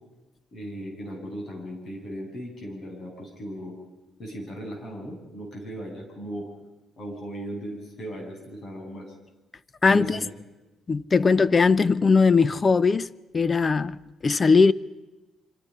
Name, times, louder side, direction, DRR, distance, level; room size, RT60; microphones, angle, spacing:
voice 1, 0.5-3.8 4.2-6.5 7.0-9.1 9.9-10.3, right 1 dB, 50° left, 7.8 m, -37 dB
voice 2, 9.8-10.2 10.9-13.1 13.3-14.0 14.2-14.7, left 4 dB, 35° left, 0.7 m, -19 dB
25.5 x 25.5 x 5.5 m
cardioid pair, 90°, 0 cm